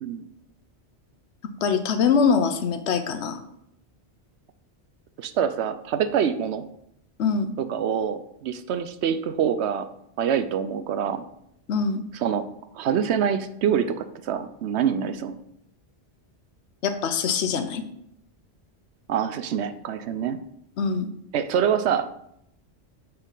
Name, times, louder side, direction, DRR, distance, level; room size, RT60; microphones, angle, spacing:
voice 1, 1.6-3.4 7.2-7.5 11.7-12.0 16.8-17.8 20.8-21.1, left 6 dB, 75° left, 9 dB, 1.0 m, -23 dB
voice 2, 5.2-6.6 7.6-9.9 10.2-11.2 12.1-15.4 19.1-20.4 21.3-22.1, right 8 dB, 80° right, 11 dB, 0.9 m, -25 dB
6.7 x 6.0 x 3.8 m, 0.75 s
omnidirectional pair, 1.2 m